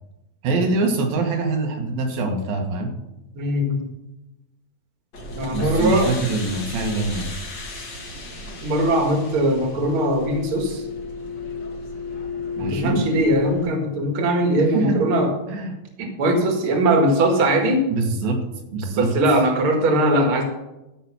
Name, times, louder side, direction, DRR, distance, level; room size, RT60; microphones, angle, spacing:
voice 1, 0.4-2.9 5.5-7.4 12.6-13.1 14.6-15.1 15.5-15.8 17.9-18.4 18.7-19.1, right 3 dB, 80° right, 3 dB, 3.3 m, -24 dB
voice 2, 3.3-3.9 5.4-6.1 8.6-10.8 12.6-15.3 16.0-17.8 19.0-20.4, right 1 dB, 45° right, 3 dB, 2.2 m, -20 dB
sound 1, 5.1-13.6, left 3 dB, 40° left, 1.9 m, -33 dB
14.5 x 5.9 x 6.1 m, 0.96 s
omnidirectional pair, 4.1 m